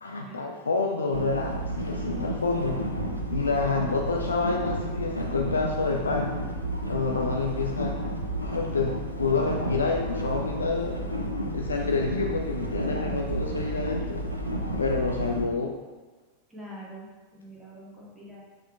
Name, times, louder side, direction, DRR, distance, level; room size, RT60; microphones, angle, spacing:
voice 1, 0.0-2.9 3.3-6.3 6.9-8.0 8.4-11.0 11.5-14.2 14.8-15.7, left 4 dB, 75° left, 1 dB, 0.3 m, -28 dB
sound 1, 1.1-15.5, right 1 dB, 85° right, 0.5 m, -31 dB
voice 2, 16.5-18.4, right 1 dB, 5° right, -7 dB, 1.4 m, -44 dB
6.3 x 3.7 x 2.2 m, 1.3 s
figure-of-eight pair, 90°, 0 cm